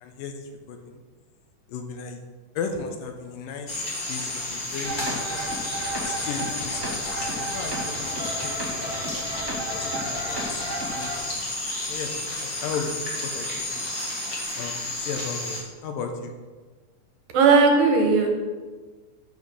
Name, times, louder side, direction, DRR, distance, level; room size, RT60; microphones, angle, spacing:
voice 1, 0.0-1.0 1.7-2.2 2.6-5.2 6.0-7.1 7.4-9.0 9.7-11.4 11.9-12.1 12.4-12.9 13.2-13.9 14.6-16.3, left 5 dB, 75° left, 4 dB, 2.5 m, -35 dB
sound 1, 3.7-15.6, left 2 dB, 40° left, 1.5 m, -31 dB
sound 2, 4.8-11.2, right 1 dB, 10° right, 1.3 m, -33 dB
voice 2, 17.3-18.5, right 4 dB, 75° right, 2 dB, 2.8 m, -17 dB
9.1 x 5.7 x 6.4 m, 1.4 s
omnidirectional pair, 4.1 m